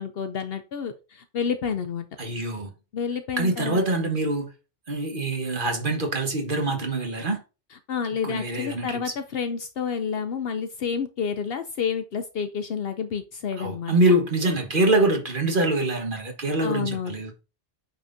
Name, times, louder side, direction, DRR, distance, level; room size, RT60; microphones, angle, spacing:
voice 1, 0.0-2.1 2.9-3.8 7.9-14.2 16.6-17.2, left 6 dB, 65° left, 0.8 m, -29 dB
voice 2, 2.2-2.7 3.4-4.5 4.9-7.4 8.2-9.1 13.6-17.3, right 2 dB, 50° right, 1.5 m, -24 dB
9.1 x 4.3 x 2.6 m
omnidirectional pair, 1.1 m